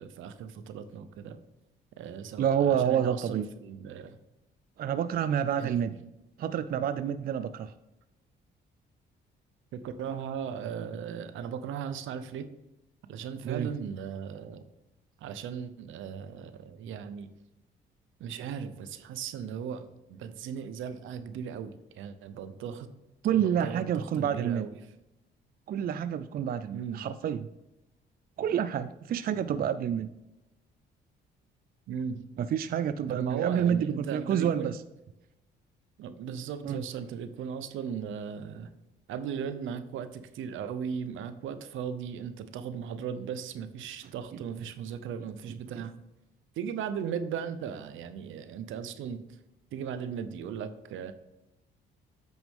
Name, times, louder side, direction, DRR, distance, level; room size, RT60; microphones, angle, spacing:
voice 1, 0.0-1.4 2.0-4.2 5.6-6.0 9.7-12.5 13.1-14.6 15.2-17.3 18.2-22.9 23.2-24.8 26.7-27.0 31.9-32.2 33.1-34.8 36.0-38.7 39.1-45.9 46.5-49.2 49.7-51.1, right 7 dB, 80° right, 11 dB, 0.8 m, -37 dB
voice 2, 2.4-3.5 4.8-5.9 6.4-7.7 13.4-13.7 23.2-24.7 25.7-27.5 28.4-30.1 32.4-34.8 36.6-36.8, right 9 dB, 50° right, 13 dB, 0.4 m, -28 dB
8.7 x 6.1 x 3.7 m, 0.97 s
cardioid pair, 90°, 20 cm